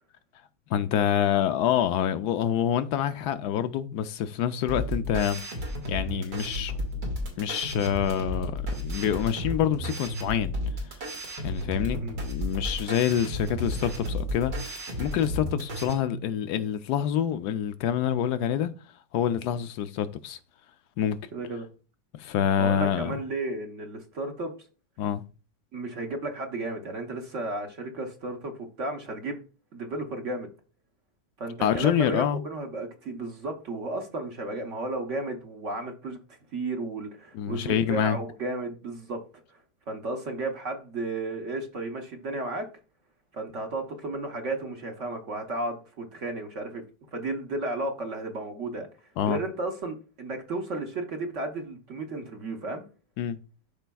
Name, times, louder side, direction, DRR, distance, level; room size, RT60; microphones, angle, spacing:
voice 1, 0.7-5.4 5.9-6.7 7.4-10.5 11.4-18.7 19.1-20.4 21.0-21.2 22.1-23.2 25.0-25.2 31.6-32.4 37.3-38.2 49.2-49.4 53.2-53.4, left 10 dB, 80° left, 1.1 m, -27 dB
sound 1, 4.7-15.9, equal, 80° right, 2.5 m, -32 dB
voice 2, 21.3-21.7 22.6-24.5 25.7-29.4 29.7-30.5 31.4-36.2 36.5-39.4 39.9-42.7 43.3-46.8 47.1-48.9 49.3-52.8, right 2 dB, 50° right, 1.2 m, -33 dB
12.5 x 4.4 x 2.3 m
omnidirectional pair, 1.7 m